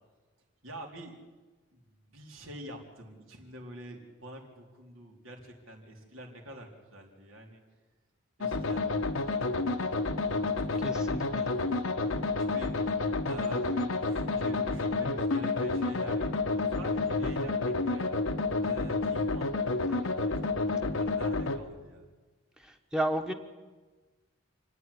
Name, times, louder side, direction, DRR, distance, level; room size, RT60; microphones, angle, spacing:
voice 1, 0.6-1.1 1.7-7.6 8.4-8.9 9.4-18.1 18.6-22.1, equal, 85° right, 1 dB, 3.9 m, -47 dB
sound 1, 8.4-21.6, left 3 dB, 85° left, 1.3 m, -30 dB
voice 2, 10.8-11.5 17.2-17.5 22.6-23.3, right 1 dB, 5° right, 5 dB, 1.1 m, -33 dB
28.0 x 9.5 x 9.9 m, 1.3 s
head